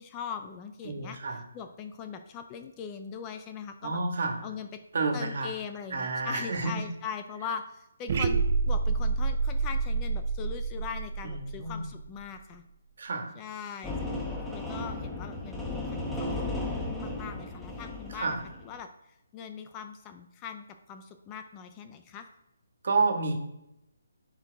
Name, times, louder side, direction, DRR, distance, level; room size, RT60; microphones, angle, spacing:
voice 1, 0.0-4.0 4.4-4.8 5.1-12.6 13.4-14.2 14.5-16.6 17.0-18.4 18.6-22.3, left 7 dB, 20° left, 7 dB, 0.4 m, -41 dB
voice 2, 0.8-1.4 3.8-4.4 4.9-5.5 5.9-6.8 11.2-11.8 13.0-13.3 18.1-18.4 22.8-23.3, right 3 dB, 60° right, 3 dB, 1.6 m, -29 dB
sound 1, 8.1-12.2, right 4 dB, 45° right, 0.6 m, -28 dB
sound 2, 13.8-18.7, left 2 dB, ahead, 0.9 m, -35 dB
10.0 x 4.5 x 3.4 m, 0.85 s
hypercardioid pair, 165°, 0 cm